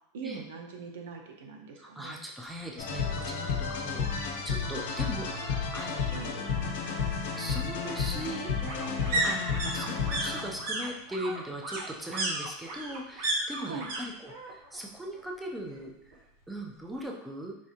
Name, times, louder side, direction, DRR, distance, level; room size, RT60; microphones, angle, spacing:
voice 1, 0.1-2.2 6.1-6.3 13.6-13.9, right 4 dB, 80° right, 3 dB, 0.8 m, -41 dB
voice 2, 1.8-6.4 7.4-17.6, right 1 dB, 5° right, -1 dB, 0.3 m, -40 dB
sound 1, 2.8-10.7, left 5 dB, 80° left, 0.9 m, -32 dB
sound 2, 3.1-3.2 3.6-3.7 3.9-4.9 6.2-14.0 14.3-14.8 15.1-16.2 16.5-16.6, right 2 dB, 45° right, 0.6 m, -35 dB
4.7 x 3.2 x 2.7 m, 0.83 s
supercardioid pair, 180°, 0 cm